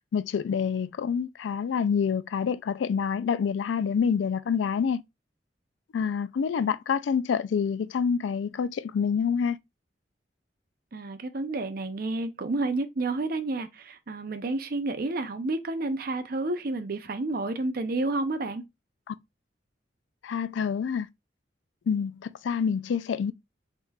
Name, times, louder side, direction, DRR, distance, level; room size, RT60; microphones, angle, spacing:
voice 1, 0.1-5.0 5.9-9.6 19.1-19.2 20.2-21.1 21.9-23.3, left 6 dB, 90° left, 0.3 m, -27 dB
voice 2, 10.9-18.6, right 2 dB, 55° right, 0.6 m, -30 dB
4.0 x 3.6 x 2.3 m
head